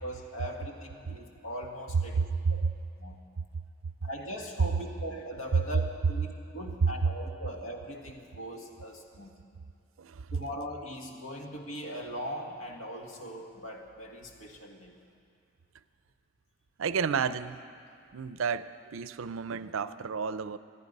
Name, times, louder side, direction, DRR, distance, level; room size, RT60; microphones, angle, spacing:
voice 1, 0.0-2.2 2.5-2.6 3.0-3.2 4.0-9.3 10.3-15.0, equal, 85° left, 2 dB, 1.7 m, -40 dB
voice 2, 2.2-2.7 6.8-6.9 10.0-10.3 16.8-17.6 18.1-20.6, right 5 dB, 80° right, 14 dB, 0.5 m, -30 dB
24.5 x 10.5 x 5.3 m, 2.4 s
head